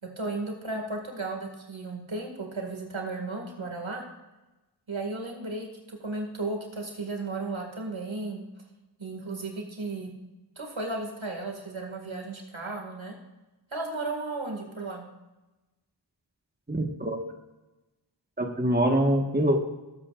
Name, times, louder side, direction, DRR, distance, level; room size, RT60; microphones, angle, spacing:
voice 1, 0.0-4.0 4.9-8.4 9.0-10.1 10.6-13.1 13.7-15.1, right 3 dB, 90° right, 1 dB, 2.2 m, -34 dB
voice 2, 16.7-17.2 18.4-19.6, right 1 dB, 20° right, 2 dB, 1.5 m, -24 dB
19.5 x 8.3 x 2.5 m, 1.1 s
wide cardioid pair, 45°, 46 cm